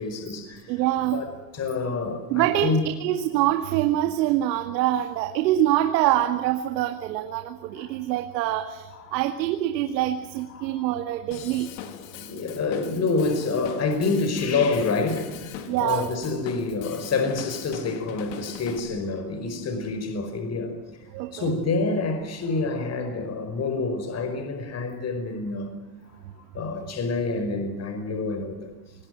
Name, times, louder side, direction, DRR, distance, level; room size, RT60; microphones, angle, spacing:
voice 1, 0.0-0.8 1.1-2.8 7.8-7.9 8.9-9.2 10.5-10.8 11.8-20.8 21.3-25.7 26.1-26.2 26.5-28.7, left 3 dB, 30° left, 5.0 m, -27 dB
voice 2, 0.7-1.2 2.3-11.7 15.7-16.1 21.1-21.5, right 13 dB, 90° right, 2.3 m, -25 dB
Drum kit / Drum, 11.3-18.8, left 8 dB, 85° left, 3.7 m, -41 dB
26.0 x 21.5 x 7.6 m
supercardioid pair, 135°, 50 cm